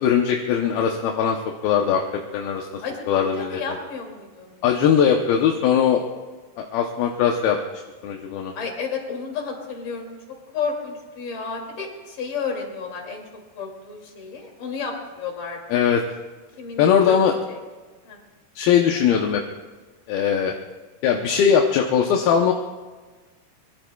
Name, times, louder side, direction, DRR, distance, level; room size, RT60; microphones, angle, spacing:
voice 1, 0.0-2.0 2.3-3.6 4.6-6.0 6.6-7.6 8.0-8.5 15.7-16.0 16.8-17.3 18.6-19.4 20.1-20.5 21.0-22.5, left 8 dB, 75° left, 1 dB, 2.5 m, -20 dB
voice 2, 2.8-4.6 8.6-10.2 10.5-13.2 13.6-15.8 16.6-17.6 18.1-18.2, left 5 dB, 55° left, 1 dB, 3.9 m, -32 dB
24.5 x 22.0 x 2.3 m, 1.3 s
omnidirectional pair, 4.9 m